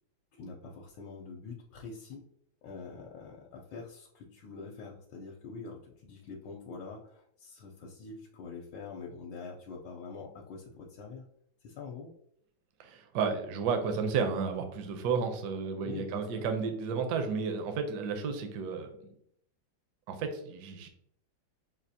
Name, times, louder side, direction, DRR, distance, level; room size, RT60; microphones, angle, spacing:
voice 1, 0.3-2.2 2.6-11.3 11.6-12.1 15.8-16.5, left 4 dB, 75° left, -1 dB, 1.3 m, -45 dB
voice 2, 12.8-18.9 20.1-20.9, right 5 dB, 70° right, 6 dB, 1.1 m, -32 dB
6.0 x 2.4 x 2.6 m, 0.70 s
omnidirectional pair, 2.1 m